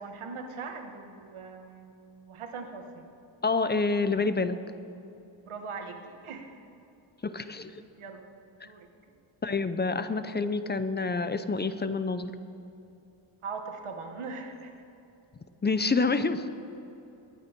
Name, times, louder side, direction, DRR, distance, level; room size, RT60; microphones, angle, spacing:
voice 1, 0.0-2.0 2.3-3.1 5.4-6.7 7.9-8.3 8.6-8.9 13.4-14.7, right 4 dB, 80° right, 4 dB, 1.6 m, -40 dB
voice 2, 3.4-4.6 7.2-7.7 8.6-8.7 9.4-12.3 15.6-16.5, left 4 dB, 20° left, 11 dB, 0.5 m, -27 dB
22.0 x 8.9 x 4.5 m, 2.7 s
wide cardioid pair, 120°, 49 cm